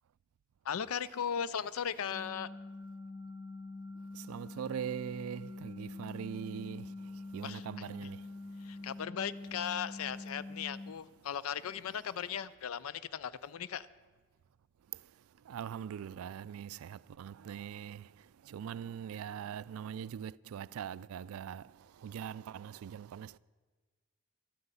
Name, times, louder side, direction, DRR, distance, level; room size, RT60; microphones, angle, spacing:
voice 1, 0.6-2.5 7.4-7.7 8.6-13.9, left 8 dB, 75° left, 0.4 m, -37 dB
sound 1, 2.1-10.9, left 2 dB, 45° left, 1.5 m, -45 dB
voice 2, 4.2-6.9 7.3-8.2 15.5-18.1 18.5-21.7 22.0-23.4, right 8 dB, 80° right, 0.3 m, -41 dB
12.5 x 9.6 x 8.2 m
head